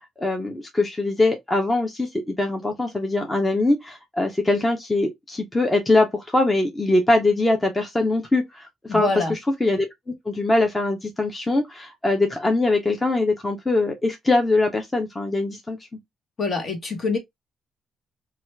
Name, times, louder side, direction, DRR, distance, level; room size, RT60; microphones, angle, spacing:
voice 1, 0.2-9.9 10.3-15.8, left 2 dB, 20° left, 0.8 m, -22 dB
voice 2, 8.9-9.3 16.4-17.2, left 3 dB, 45° left, 1.3 m, -25 dB
2.8 x 2.4 x 3.2 m
cardioid pair, 90°, 0 cm